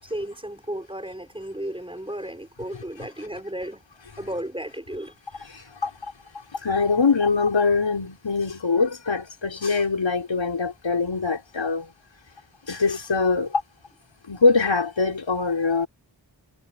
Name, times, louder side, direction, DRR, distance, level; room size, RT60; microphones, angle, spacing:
voice 1, 0.0-3.8 4.2-5.1, right 1 dB, 10° right, 6.0 m, -34 dB
voice 2, 5.5-6.1 6.5-11.9 12.7-13.6 14.3-15.9, left 4 dB, 80° left, 5.4 m, -23 dB
wide cardioid pair, 75°, 44 cm